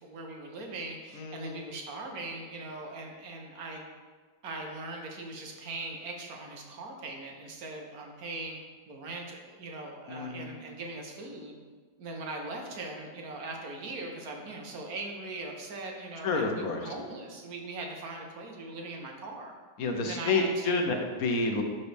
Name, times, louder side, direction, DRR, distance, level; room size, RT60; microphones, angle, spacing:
voice 1, 0.0-3.8 4.4-8.6 8.9-11.5 12.0-19.5 20.0-20.8, right 2 dB, 55° right, 1 dB, 1.3 m, -40 dB
voice 2, 1.1-1.6 10.1-10.5 16.2-16.9 19.8-21.6, left 3 dB, 60° left, 3 dB, 1.1 m, -29 dB
11.5 x 4.2 x 3.4 m, 1.4 s
omnidirectional pair, 2.0 m